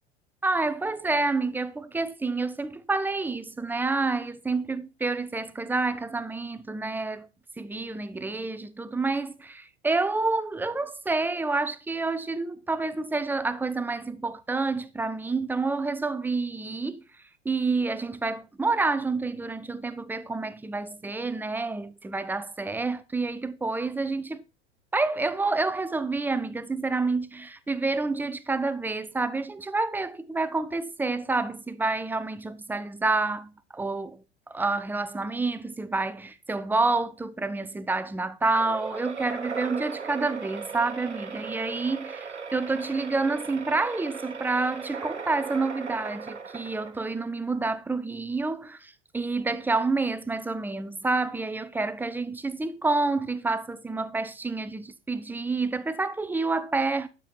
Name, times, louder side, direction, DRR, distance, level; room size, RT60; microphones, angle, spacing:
voice 1, 0.4-7.3 7.6-17.0 17.4-24.4 24.9-57.1, right 3 dB, 5° right, 0.5 m, -28 dB
sound 1, 38.5-47.3, right 5 dB, 85° right, 0.9 m, -37 dB
11.5 x 5.3 x 4.6 m
figure-of-eight pair, 80°, 34 cm